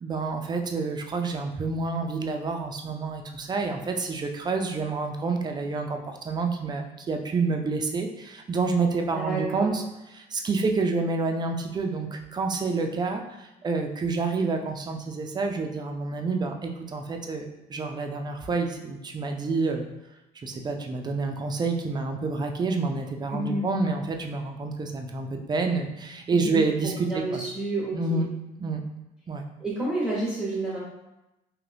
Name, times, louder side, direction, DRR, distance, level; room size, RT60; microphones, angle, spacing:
voice 1, 0.0-9.8 10.1-19.9 20.4-27.4 27.9-28.3 28.6-28.8 29.3-29.4, right 3 dB, 25° right, 4 dB, 0.4 m, -28 dB
voice 2, 9.1-9.7 23.3-23.7 26.3-26.6 27.1-28.3 29.6-30.8, right 2 dB, 5° right, -6 dB, 0.9 m, -30 dB
2.6 x 2.4 x 3.3 m, 0.93 s
cardioid pair, 110°, 17 cm